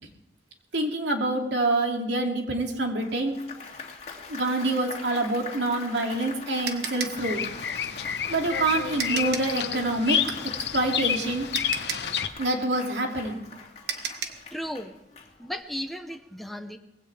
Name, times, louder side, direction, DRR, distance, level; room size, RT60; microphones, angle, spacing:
voice 1, 0.7-3.3 4.3-7.5 8.3-10.3 10.7-11.5 12.4-13.4, right 2 dB, 90° right, 2 dB, 2.6 m, -26 dB
Applause, 3.0-15.7, left 4 dB, 40° left, 2.3 m, -43 dB
sound 1, 5.9-9.6 11.0-11.1 11.5-14.5, right 7 dB, 70° right, 1.4 m, -35 dB
Bird vocalization bird call bird song, 7.2-12.3, left 8 dB, 70° left, 0.9 m, -29 dB
voice 2, 14.5-14.9 15.4-16.8, equal, ahead, 4 dB, 0.9 m, -35 dB
20.0 x 16.5 x 3.4 m, 0.93 s
head